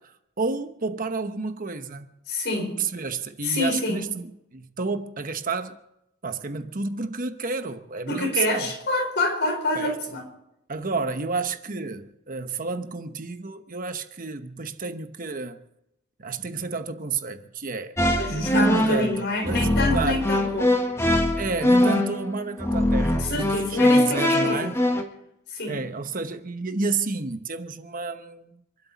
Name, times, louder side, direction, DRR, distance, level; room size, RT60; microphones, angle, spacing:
voice 1, 0.4-2.1 2.8-5.8 6.2-8.7 9.7-9.9 10.7-15.6 16.2-18.0 18.3-20.2 21.4-24.7 25.7-28.6, right 4 dB, 40° right, 1.0 m, -30 dB
voice 2, 2.3-2.8 3.4-4.1 8.1-10.2 18.1-20.8 23.2-24.7 25.5-25.8, left 2 dB, 55° left, 4.8 m, -27 dB
sound 1, 18.0-25.0, left 1 dB, 15° left, 1.7 m, -22 dB
27.5 x 12.0 x 4.1 m
head